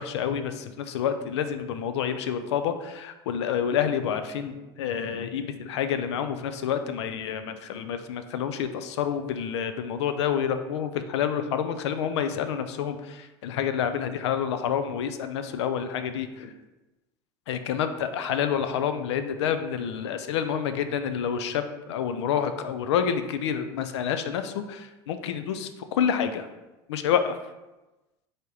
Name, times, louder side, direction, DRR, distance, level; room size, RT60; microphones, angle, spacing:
voice 1, 0.0-16.5 17.5-26.5 26.9-27.4, left 8 dB, 85° left, 9 dB, 0.4 m, -28 dB
4.0 x 3.5 x 3.8 m, 1.1 s
hypercardioid pair, 85°, 14 cm